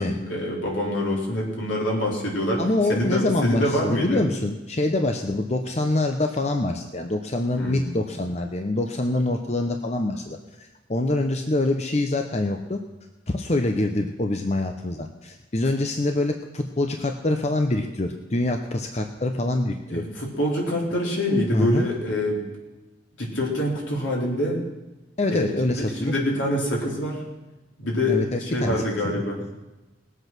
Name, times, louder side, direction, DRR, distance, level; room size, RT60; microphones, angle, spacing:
voice 1, 0.0-2.6 2.9-4.2 7.5-7.9 19.9-22.4 23.2-24.6 25.3-27.2 27.8-29.4, left 1 dB, 80° left, -2 dB, 3.9 m, -25 dB
voice 2, 2.6-12.8 13.3-20.0 21.5-21.9 25.2-26.1 28.1-29.2, left 2 dB, 35° left, 4 dB, 0.8 m, -25 dB
19.5 x 8.1 x 6.0 m, 1.1 s
head